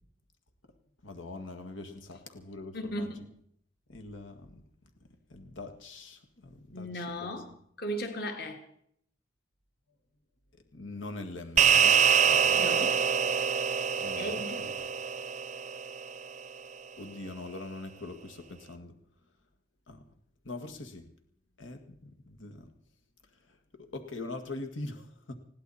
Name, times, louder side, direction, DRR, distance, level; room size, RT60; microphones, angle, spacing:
voice 1, 1.0-3.1 3.9-4.6 5.3-7.3 10.7-12.6 14.0-14.7 17.0-18.9 19.9-20.0 20.5-21.1 21.6-22.6 23.7-25.4, left 2 dB, 90° left, 5 dB, 1.9 m, -43 dB
voice 2, 2.7-3.3 6.7-8.6 12.5-13.0 14.2-14.7, equal, 55° left, 5 dB, 2.2 m, -37 dB
sound 1, 11.6-16.2, right 7 dB, 40° right, 0.6 m, -25 dB
21.0 x 16.0 x 4.3 m, 0.66 s
head